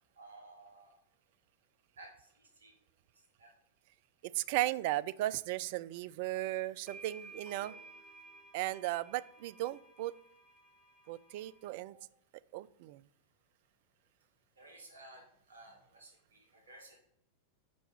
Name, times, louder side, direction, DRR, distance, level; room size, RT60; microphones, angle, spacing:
voice 1, 0.1-1.0 2.0-2.8 3.4-3.5 6.3-6.5 11.9-12.0 14.6-17.0, right 2 dB, 70° right, 2 dB, 1.7 m, -55 dB
voice 2, 4.2-7.7 8.5-10.1 11.1-11.9 12.5-13.0, right 16 dB, 50° right, 17 dB, 0.3 m, -36 dB
sound 1, 6.3-6.4 6.9-11.7, right 3 dB, 10° left, 2.6 m, -55 dB
6.3 x 5.6 x 7.0 m, 0.71 s
figure-of-eight pair, 90°, 0 cm